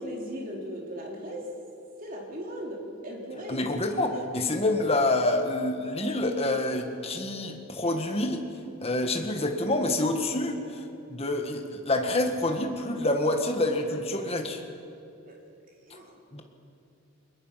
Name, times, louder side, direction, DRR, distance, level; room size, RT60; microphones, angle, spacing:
voice 1, 0.0-1.5 2.0-3.6 4.0-4.3 15.2-15.4 15.9-16.2, equal, 40° right, -1 dB, 3.7 m, -38 dB
voice 2, 3.5-8.4 8.8-10.8 11.1-14.6 16.3-16.4, left 2 dB, 25° left, 4 dB, 1.7 m, -27 dB
24.0 x 21.5 x 5.9 m, 2.7 s
head